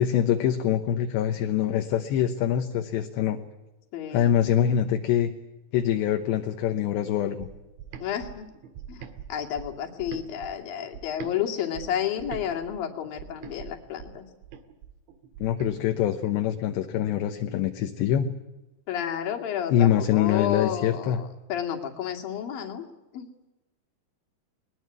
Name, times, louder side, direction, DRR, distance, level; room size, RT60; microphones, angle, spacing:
voice 1, 0.0-3.4 4.1-5.3 5.7-7.5 15.4-18.3 19.7-21.2, left 10 dB, 75° left, 6 dB, 3.2 m, -24 dB
voice 2, 3.9-4.5 8.0-8.5 8.9-14.3 18.9-22.9 23.1-23.3, left 9 dB, 55° left, 2 dB, 3.8 m, -31 dB
sound 1, 7.4-11.4 11.7-15.7, right 8 dB, 75° right, 4.0 m, -43 dB
21.5 x 21.0 x 9.5 m, 1.0 s
omnidirectional pair, 5.3 m